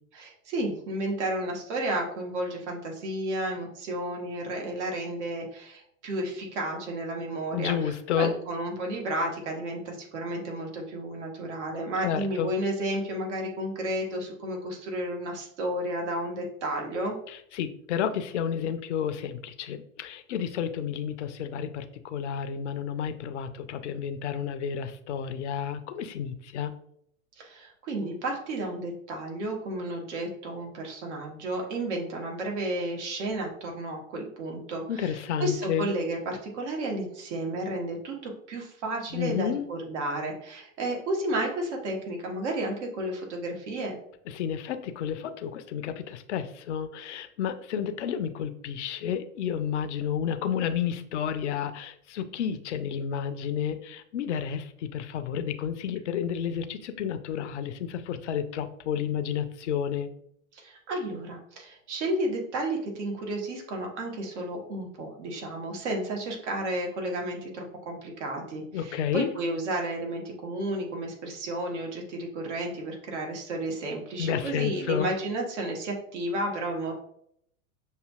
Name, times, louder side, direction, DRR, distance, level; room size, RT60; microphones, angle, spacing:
voice 1, 0.1-7.7 8.2-17.2 27.4-44.0 60.5-76.9, right 1 dB, 55° right, 1 dB, 1.3 m, -32 dB
voice 2, 7.5-8.3 12.0-12.5 17.3-26.7 34.9-35.9 39.1-39.7 44.3-60.1 68.7-69.3 74.2-75.1, left 8 dB, 55° left, 9 dB, 0.6 m, -31 dB
6.4 x 2.7 x 2.4 m, 0.69 s
figure-of-eight pair, 90°, 42 cm